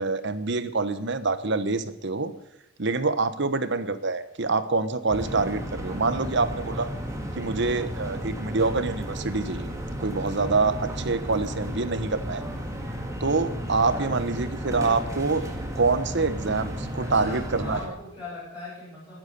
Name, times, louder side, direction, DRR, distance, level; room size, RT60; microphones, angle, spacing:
voice 1, 0.0-2.3 2.8-6.9 7.4-9.7 10.0-12.4 13.2-15.4 15.8-17.8, right 3 dB, 65° right, 12 dB, 1.2 m, -26 dB
sound 1, 5.1-17.9, equal, 15° right, 2.4 m, -33 dB
voice 2, 17.0-19.2, left 2 dB, 25° left, -9 dB, 7.3 m, -40 dB
21.0 x 9.3 x 6.9 m, 0.82 s
head